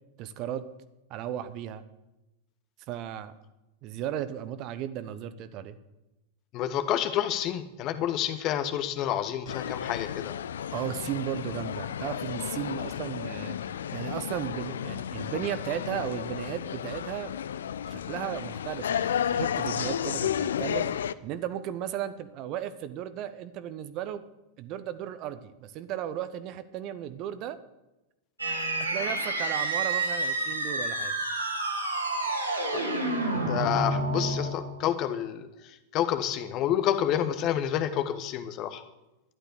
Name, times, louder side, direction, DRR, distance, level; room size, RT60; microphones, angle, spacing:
voice 1, 0.2-0.7 1.1-1.8 2.9-3.3 3.8-5.8 10.7-13.6 13.9-17.3 17.9-20.9 21.2-24.2 24.6-27.6 28.9-31.1, right 10 dB, 40° right, 13 dB, 1.0 m, -35 dB
voice 2, 6.5-10.3 32.7-32.8 33.3-38.8, left 10 dB, 40° left, 9 dB, 1.4 m, -29 dB
sound 1, 9.5-21.1, left 9 dB, 65° left, 0.5 m, -32 dB
sound 2, 28.4-34.9, right 2 dB, 80° right, 3.1 m, -29 dB
13.0 x 11.5 x 6.7 m, 0.97 s
figure-of-eight pair, 90°, 0 cm